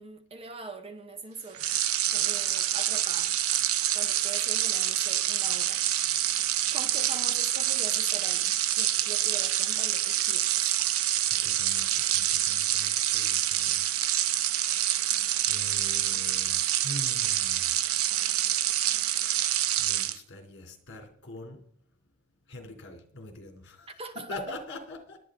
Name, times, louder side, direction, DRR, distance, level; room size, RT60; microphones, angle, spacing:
voice 1, 0.0-1.6 2.1-3.4 3.9-5.8 6.7-10.5 23.9-24.6, right 2 dB, 25° right, 1.1 m, -42 dB
sound 1, 1.5-20.2, right 12 dB, 75° right, 0.7 m, -27 dB
voice 2, 11.4-13.8 15.5-17.7 19.8-21.6 22.5-23.9 24.3-25.2, left 2 dB, 55° left, 3.2 m, -43 dB
21.5 x 8.9 x 3.8 m
head